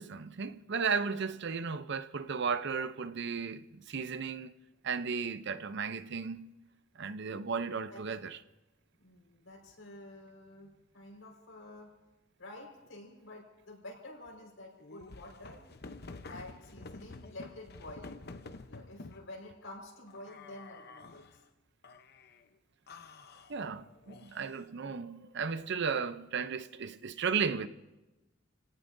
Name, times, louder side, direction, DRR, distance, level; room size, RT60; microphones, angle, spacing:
voice 1, 0.0-4.5 4.8-6.5 7.0-8.4 23.5-27.7, right 5 dB, 60° right, 0.6 m, -35 dB
voice 2, 9.0-11.9 12.4-15.6 16.2-18.1 18.7-21.3 24.8-25.0, left 1 dB, 90° left, 4.8 m, -49 dB
sound 1, 14.8-19.3 20.1-21.4 21.8-22.4 22.9-24.7, left 3 dB, 55° left, 0.8 m, -49 dB
29.5 x 17.5 x 2.7 m
head